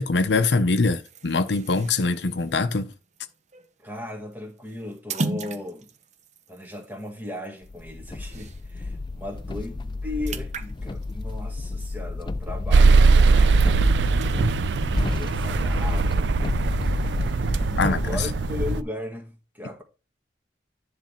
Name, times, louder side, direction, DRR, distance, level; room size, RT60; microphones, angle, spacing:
voice 1, 0.0-2.9 17.8-18.3, left 3 dB, 80° left, 0.8 m, -23 dB
sound 1, 0.8-8.8 9.2-9.4 9.7-12.6 13.0-14.6, right 3 dB, 40° right, 0.7 m, -38 dB
voice 2, 3.8-5.9 6.5-16.3 17.5-19.8, left 1 dB, 10° right, 1.8 m, -37 dB
sound 2, 7.7-18.8, left 3 dB, 25° left, 0.4 m, -30 dB
sound 3, 12.7-18.8, right 4 dB, 80° right, 0.4 m, -20 dB
10.5 x 3.5 x 5.8 m
head